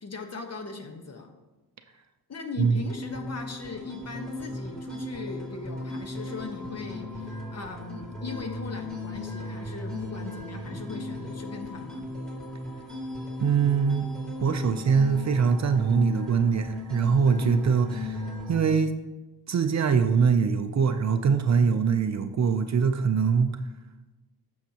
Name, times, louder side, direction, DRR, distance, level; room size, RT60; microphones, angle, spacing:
voice 1, 0.0-1.3 2.3-12.1 17.4-17.6, left 4 dB, 40° left, 5 dB, 1.1 m, -39 dB
sound 1, 2.6-18.6, left 1 dB, ahead, 2.1 m, -37 dB
voice 2, 13.4-14.1 14.4-18.2 18.5-18.9 19.5-23.6, right 6 dB, 45° right, 8 dB, 0.5 m, -23 dB
15.0 x 6.5 x 2.9 m, 1.1 s
wide cardioid pair, 150°, 39 cm